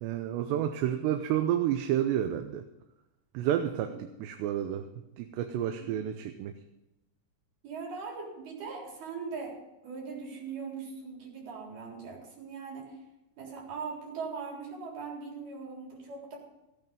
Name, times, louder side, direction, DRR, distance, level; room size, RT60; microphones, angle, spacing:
voice 1, 0.0-2.6 3.3-3.9 4.2-4.9 5.2-6.5, right 11 dB, 85° right, 7 dB, 3.0 m, -30 dB
voice 2, 3.4-4.0 5.8-6.0 7.6-9.6 9.8-13.0 13.4-16.4, right 5 dB, 65° right, -2 dB, 5.7 m, -40 dB
16.0 x 8.9 x 5.4 m, 0.96 s
omnidirectional pair, 4.8 m